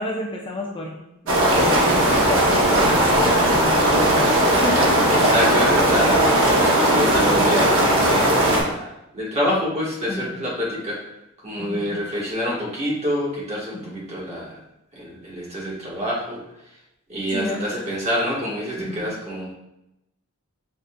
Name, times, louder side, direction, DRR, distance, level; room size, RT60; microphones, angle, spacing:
voice 1, 0.0-3.2 3.5-5.0 10.1-10.3 11.6-11.9 13.7-13.9 17.3-17.7 18.8-19.1, left 1 dB, 25° left, -2 dB, 0.5 m, -31 dB
sound 1, 1.3-8.6, right 1 dB, 65° right, 0.8 m, -18 dB
voice 2, 5.1-7.8 8.0-11.0 11.4-14.5 14.9-16.4 17.1-19.5, equal, 30° right, -5 dB, 1.2 m, -26 dB
6.5 x 2.4 x 2.2 m, 0.88 s
head